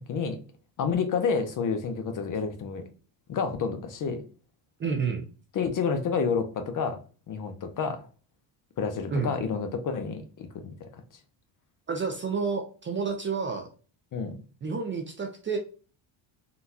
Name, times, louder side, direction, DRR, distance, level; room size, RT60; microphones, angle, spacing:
voice 1, 0.8-2.8 3.3-4.2 5.5-7.0 7.3-8.0 8.8-10.9 14.1-14.3, left 5 dB, 40° left, 7 dB, 0.6 m, -29 dB
voice 2, 4.8-5.2 9.1-9.3 11.9-13.7 14.6-15.6, right 5 dB, 25° right, 3 dB, 0.4 m, -29 dB
3.8 x 2.3 x 2.6 m, 0.37 s
cardioid pair, 120°, 49 cm